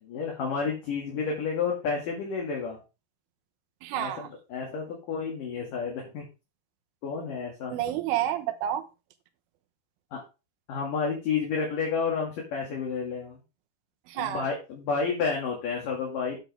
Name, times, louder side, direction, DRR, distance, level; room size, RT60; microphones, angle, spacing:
voice 1, 0.0-2.8 3.9-6.3 7.0-7.8 10.1-10.2 10.7-13.4 14.1-16.4, left 5 dB, 50° left, 0 dB, 3.1 m, -30 dB
voice 2, 3.8-4.3 7.7-8.8 14.1-14.5, right 11 dB, 80° right, 7 dB, 3.5 m, -29 dB
9.8 x 9.2 x 3.5 m, 0.29 s
omnidirectional pair, 5.9 m